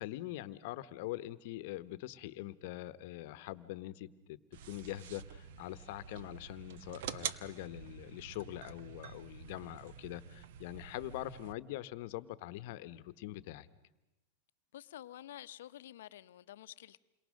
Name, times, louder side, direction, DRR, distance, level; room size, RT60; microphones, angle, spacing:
voice 1, 0.0-4.4 4.7-13.7, left 15 dB, 60° left, 1.1 m, -43 dB
sound 1, 4.5-11.5, right 8 dB, 65° right, 1.0 m, -47 dB
voice 2, 14.7-17.0, left 12 dB, 80° left, 0.8 m, -50 dB
28.5 x 22.5 x 6.5 m
supercardioid pair, 145°, 0 cm